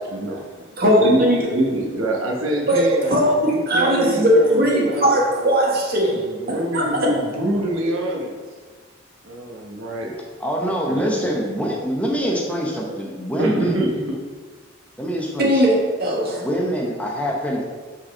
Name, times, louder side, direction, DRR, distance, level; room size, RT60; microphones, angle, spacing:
voice 1, 0.1-0.4 1.0-1.2 1.5-5.5 6.1-8.4 9.2-10.2 10.9-11.2 13.4-14.2, right 1 dB, 80° right, 0 dB, 1.2 m, -25 dB
voice 2, 0.8-1.4 2.7-2.8 3.1-6.2 6.5-7.1 15.4-16.4, equal, 50° right, -2 dB, 1.4 m, -18 dB
voice 3, 10.4-13.9 15.0-15.7 16.3-17.6, equal, 5° left, -2 dB, 0.7 m, -24 dB
5.2 x 4.3 x 5.3 m, 1.5 s
head